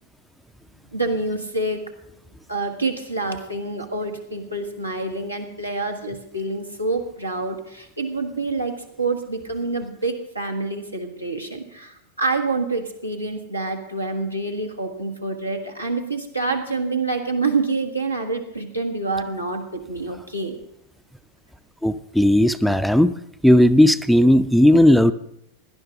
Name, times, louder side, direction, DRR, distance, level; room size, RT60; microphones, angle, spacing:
voice 1, 0.9-1.8 2.5-20.6, right 3 dB, 85° right, 2 dB, 1.5 m, -27 dB
voice 2, 21.8-23.1 23.4-25.1, left 1 dB, ahead, 11 dB, 0.4 m, -15 dB
17.5 x 11.0 x 3.7 m, 0.78 s
figure-of-eight pair, 90°, 0 cm